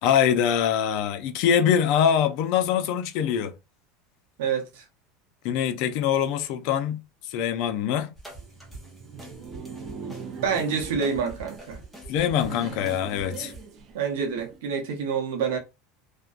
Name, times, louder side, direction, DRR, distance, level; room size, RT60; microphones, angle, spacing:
voice 1, 0.0-3.5 5.4-8.1 12.1-13.5, left 9 dB, 60° left, 0.4 m, -24 dB
voice 2, 4.4-4.8 10.4-11.8 13.9-15.6, right 6 dB, 85° right, 0.8 m, -27 dB
sound 1, 8.2-13.6, right 2 dB, 5° right, 0.7 m, -45 dB
Laughter, 8.3-14.6, right 5 dB, 45° right, 0.5 m, -41 dB
2.6 x 2.2 x 2.4 m
supercardioid pair, 145°, 0 cm